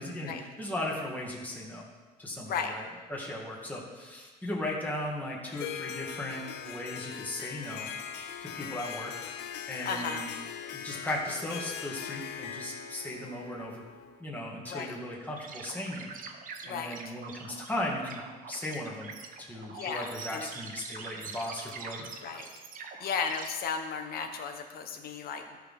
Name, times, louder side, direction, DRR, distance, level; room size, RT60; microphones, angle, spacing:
voice 1, 0.0-1.9 2.2-7.9 8.4-9.1 9.7-10.3 10.7-13.8 14.2-16.2 16.6-22.1, left 1 dB, 10° left, -3 dB, 1.9 m, -37 dB
voice 2, 2.5-2.8 9.8-10.2 14.7-14.9 16.6-17.1 19.7-20.5 22.2-22.5 23.0-25.6, left 6 dB, 65° left, 6 dB, 1.1 m, -35 dB
Harp, 5.5-14.3, left 8 dB, 80° left, 0.6 m, -40 dB
sound 1, 15.4-23.5, right 5 dB, 55° right, 1.0 m, -44 dB
13.5 x 5.9 x 3.7 m, 1.3 s
cardioid pair, 110°, 17 cm